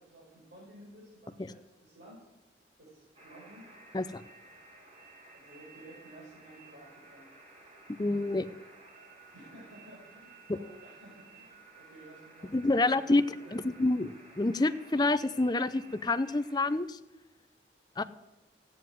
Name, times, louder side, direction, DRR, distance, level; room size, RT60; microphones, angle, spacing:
voice 1, 0.0-2.2 2.8-3.7 5.3-7.3 9.3-13.6, right 1 dB, 75° right, -8 dB, 6.0 m, -53 dB
sound 1, 3.2-16.8, right 3 dB, 35° right, 2.8 m, -55 dB
voice 2, 8.0-8.5 10.5-10.6 12.5-13.2 13.5-17.0 18.0-18.1, left 2 dB, 25° left, 12 dB, 0.6 m, -28 dB
14.5 x 9.3 x 7.7 m, 1.1 s
head